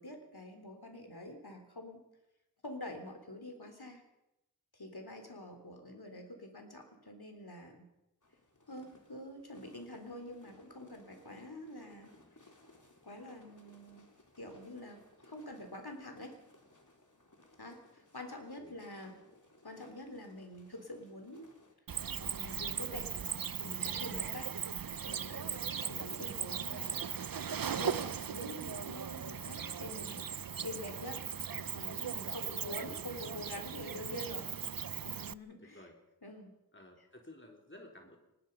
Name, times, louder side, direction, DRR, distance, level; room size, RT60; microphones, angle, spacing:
voice 1, 0.0-2.1 2.6-4.0 4.7-7.9 8.7-12.1 13.0-14.1 14.4-16.3 17.6-19.1 19.6-21.6 22.2-23.1 23.5-24.6 25.1-30.3 30.6-31.3 31.7-34.5 35.0-35.8 36.2-36.5, left 1 dB, 80° left, 4 dB, 3.9 m, -46 dB
sound 1, 8.2-21.7, left 2 dB, 50° left, 3.8 m, -63 dB
Cricket, 21.9-35.3, right 7 dB, 65° right, 0.6 m, -38 dB
voice 2, 35.6-36.0 36.7-38.2, left 1 dB, 30° left, 1 dB, 4.0 m, -54 dB
23.5 x 20.0 x 5.6 m, 0.91 s
wide cardioid pair, 40°, 38 cm